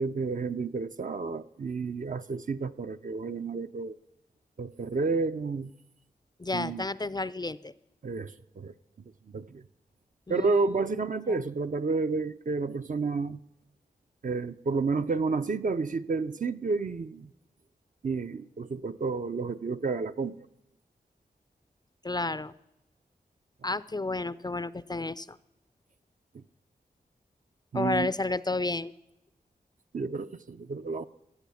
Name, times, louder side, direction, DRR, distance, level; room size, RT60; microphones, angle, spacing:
voice 1, 0.0-4.0 4.6-5.7 6.5-6.9 8.0-8.7 9.3-9.6 10.3-13.4 14.2-17.3 18.0-20.5 26.3-26.4 27.7-28.1 29.9-31.1, right 4 dB, 50° right, 0.6 m, -30 dB
voice 2, 6.4-7.7 10.3-10.9 11.3-11.4 22.0-22.5 23.6-25.4 27.7-28.9, left 2 dB, 25° left, 0.4 m, -31 dB
15.5 x 7.9 x 7.0 m
cardioid pair, 50°, 17 cm